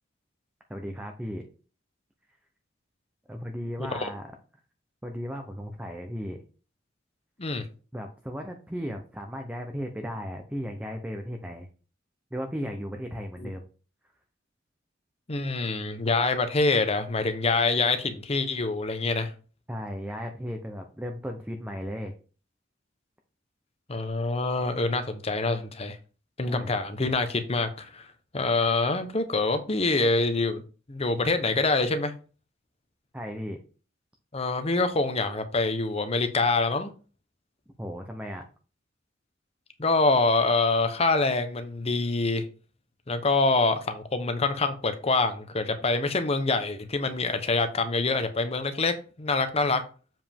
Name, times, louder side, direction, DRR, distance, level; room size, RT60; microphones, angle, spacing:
voice 1, 0.7-1.4 3.3-4.3 5.0-6.4 7.9-11.7 12.3-13.6 19.7-22.1 26.5-26.7 33.1-33.6 37.8-38.4, equal, 10° right, 0.7 m, -35 dB
voice 2, 15.3-19.3 23.9-26.0 26.4-28.1 28.3-30.6 30.9-32.1 34.3-36.9 39.8-42.4 43.1-49.8, left 3 dB, 30° left, 0.9 m, -25 dB
7.3 x 5.0 x 3.6 m
head